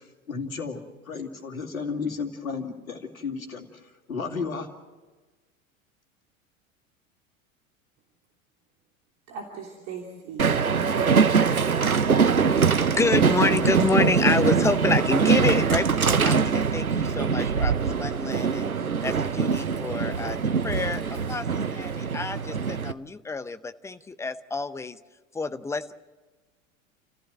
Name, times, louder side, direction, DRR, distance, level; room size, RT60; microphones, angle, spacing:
voice 1, 0.0-4.7, left 5 dB, 80° left, 4 dB, 2.5 m, -33 dB
voice 2, 9.3-11.6, right 6 dB, 45° right, 0 dB, 3.1 m, -38 dB
Train, 10.4-22.9, right 6 dB, 90° right, 0.7 m, -23 dB
voice 3, 13.0-18.7 19.0-25.0 25.3-25.9, left 3 dB, 5° left, 12 dB, 0.7 m, -28 dB
29.0 x 15.0 x 7.8 m, 1.3 s
figure-of-eight pair, 80°, 41 cm